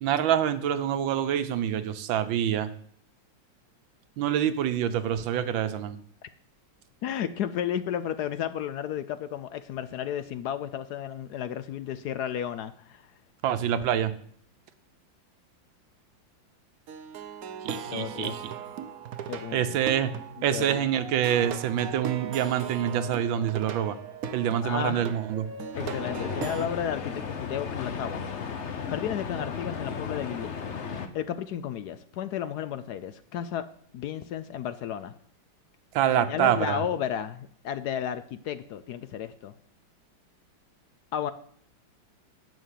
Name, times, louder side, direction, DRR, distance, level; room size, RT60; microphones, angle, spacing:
voice 1, 0.0-2.7 4.2-6.0 13.4-14.1 17.6-18.5 19.5-20.1 20.4-24.0 24.3-25.5 35.9-36.9, right 10 dB, 85° right, 11 dB, 1.6 m, -26 dB
voice 2, 7.0-13.0 17.9-18.3 19.3-19.6 20.5-20.8 24.6-25.1 25.8-28.2 28.9-30.5 31.1-33.7 33.9-35.1 36.2-39.5 41.1-41.3, left 9 dB, 70° left, 13 dB, 1.0 m, -33 dB
Plucked string instrument, 16.9-26.7, right 7 dB, 60° right, 1.1 m, -38 dB
sound 1, 25.7-31.1, left 6 dB, 45° left, 1.0 m, -35 dB
9.4 x 6.5 x 8.3 m, 0.62 s
omnidirectional pair, 2.1 m